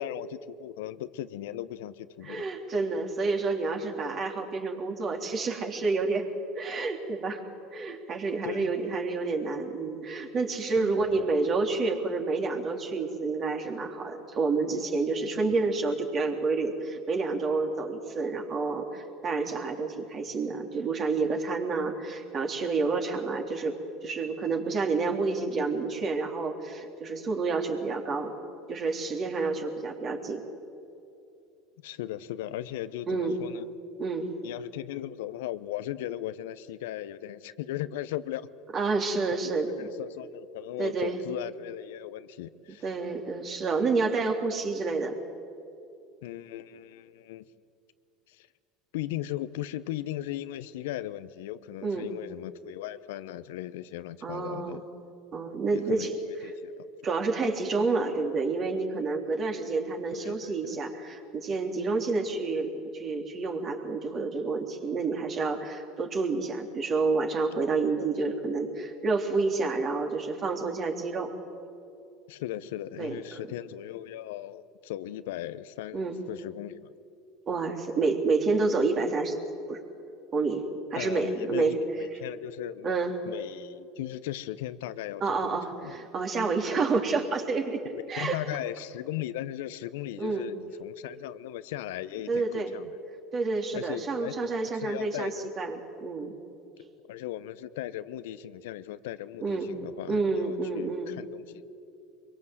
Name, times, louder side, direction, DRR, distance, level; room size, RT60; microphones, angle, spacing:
voice 1, 0.0-2.5 8.4-8.7 10.7-11.2 15.3-15.5 31.8-33.7 34.4-38.5 39.3-42.9 46.2-47.5 48.3-48.5 48.9-54.8 55.7-56.9 60.1-60.8 68.0-68.1 72.3-76.9 81.0-85.9 87.9-92.9 93.7-95.5 97.1-101.7, left 13 dB, 75° left, 13 dB, 0.8 m, -38 dB
voice 2, 2.2-6.3 6.5-7.4 7.7-23.7 24.0-28.3 28.7-30.4 33.1-33.4 34.0-34.3 38.7-39.7 40.8-41.2 42.8-45.2 51.8-52.1 54.2-54.8 55.3-56.1 57.0-71.3 73.0-73.1 75.9-76.2 77.5-79.4 79.7-79.8 80.3-80.6 80.9-81.8 82.8-83.1 85.2-87.8 88.1-88.4 90.2-90.5 92.3-92.8 93.3-96.3 99.4-99.7 100.1-101.1, right 3 dB, 40° right, 3 dB, 3.4 m, -29 dB
24.0 x 23.0 x 7.9 m, 2.7 s
hypercardioid pair, 80°, 0 cm